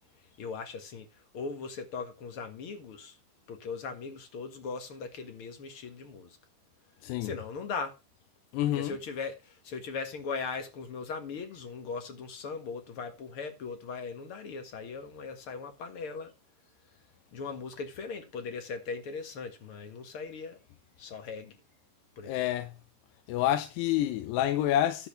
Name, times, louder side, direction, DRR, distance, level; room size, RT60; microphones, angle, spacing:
voice 1, 0.4-1.1 1.3-3.2 3.5-6.4 7.2-7.9 8.7-16.3 17.3-20.6 21.0-21.6 22.1-22.4, left 5 dB, 60° left, 1.4 m, -39 dB
voice 2, 8.5-9.0 22.2-22.8 23.3-25.1, left 12 dB, 80° left, 2.7 m, -28 dB
12.0 x 4.2 x 6.6 m
omnidirectional pair, 5.0 m